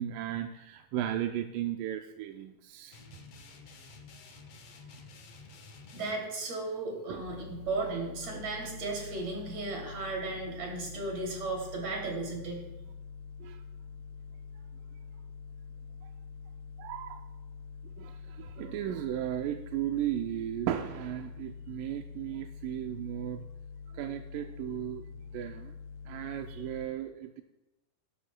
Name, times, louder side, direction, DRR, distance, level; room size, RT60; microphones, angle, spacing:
voice 1, 0.0-3.0 7.1-7.3 8.3-8.5 13.4-13.6 16.8-17.2 18.0-23.5 23.9-25.0 25.3-25.8 26.1-27.4, right 11 dB, 80° right, 6 dB, 2.0 m, -35 dB
sound 1, 2.9-6.2, left 4 dB, 65° left, 1.6 m, -51 dB
voice 2, 5.9-12.7, right 3 dB, 50° right, -1 dB, 3.8 m, -35 dB
sound 2, 7.2-26.9, left 6 dB, 80° left, 1.5 m, -46 dB
18.0 x 12.5 x 2.2 m, 0.96 s
omnidirectional pair, 4.1 m